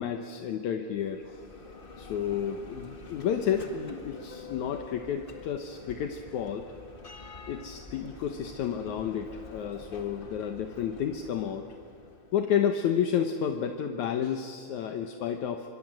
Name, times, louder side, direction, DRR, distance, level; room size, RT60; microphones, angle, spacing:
voice 1, 0.0-1.5 2.0-6.7 7.5-11.7 12.3-15.7, left 8 dB, 70° left, 6 dB, 2.4 m, -31 dB
Bell, 0.9-12.7, left 4 dB, 30° left, 1.0 m, -47 dB
28.0 x 25.0 x 7.6 m, 2.6 s
omnidirectional pair, 3.5 m